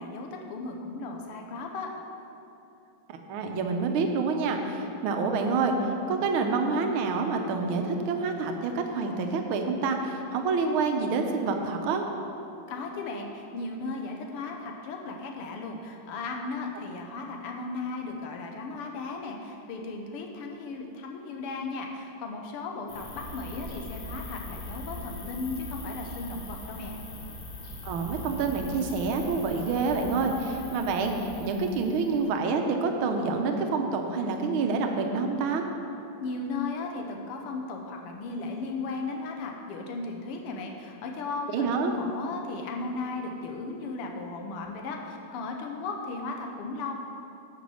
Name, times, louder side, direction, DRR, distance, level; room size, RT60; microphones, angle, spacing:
voice 1, 0.0-1.9 12.7-27.0 36.2-46.9, left 3 dB, 85° left, 2 dB, 1.9 m, -36 dB
voice 2, 3.1-12.0 27.8-35.6 41.5-41.9, right 4 dB, 75° right, 4 dB, 1.6 m, -27 dB
sound 1, 22.9-32.3, left 1 dB, 65° left, 2.2 m, -41 dB
9.2 x 6.2 x 6.2 m, 2.8 s
omnidirectional pair, 2.4 m